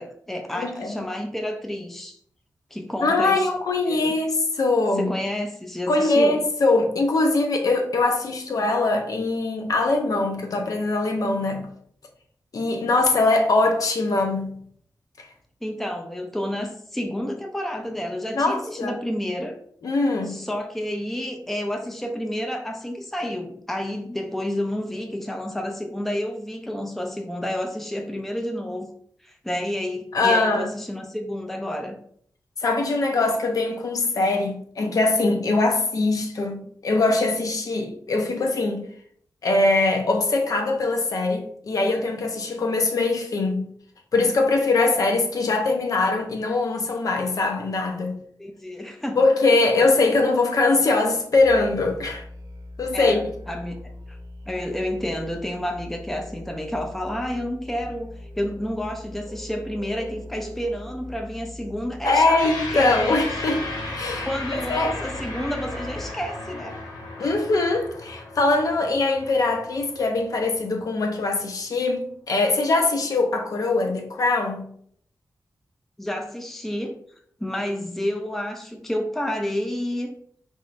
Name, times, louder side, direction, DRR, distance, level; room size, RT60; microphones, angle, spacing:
voice 1, 0.0-2.2 2.7-3.5 3.9-4.1 5.0-6.4 15.6-19.5 20.3-28.9 29.2-32.0 48.4-49.2 52.9-53.8 54.1-54.2 54.5-62.4 62.7-63.2 64.2-66.8 67.2-67.3 76.0-77.0 77.4-80.2, left 1 dB, 5° left, 0.5 m, -30 dB
voice 2, 0.5-1.0 3.0-5.2 5.9-11.7 12.5-14.6 15.2-15.3 18.3-19.0 19.8-20.5 30.1-30.7 32.6-38.9 39.4-43.7 44.1-48.2 49.2-52.2 52.8-53.2 62.0-64.9 67.2-74.7, left 3 dB, 60° left, 0.6 m, -22 dB
Musical instrument, 51.3-66.3, left 1 dB, 90° right, 0.9 m, -41 dB
sound 1, 62.4-71.0, left 2 dB, 90° left, 1.2 m, -35 dB
4.2 x 3.6 x 2.5 m
wide cardioid pair, 140°, 7 cm